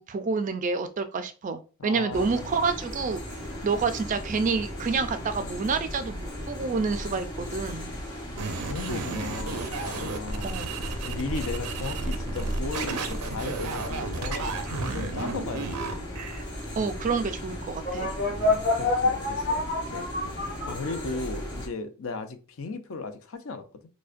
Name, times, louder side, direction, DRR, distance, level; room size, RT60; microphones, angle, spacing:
voice 1, 0.0-3.2 3.6-7.9 10.4-10.8 16.8-18.1, right 4 dB, 35° right, 0.3 m, -28 dB
voice 2, 1.8-2.5 8.6-10.5 11.0-16.2 18.2-20.1 20.7-23.6, left 4 dB, 60° left, 0.5 m, -36 dB
sound 1, 2.1-21.7, equal, 15° left, 0.9 m, -37 dB
sound 2, 8.4-16.4, right 3 dB, 90° right, 0.6 m, -33 dB
sound 3, 17.8-21.4, left 2 dB, 40° left, 1.2 m, -27 dB
4.9 x 2.1 x 2.5 m
head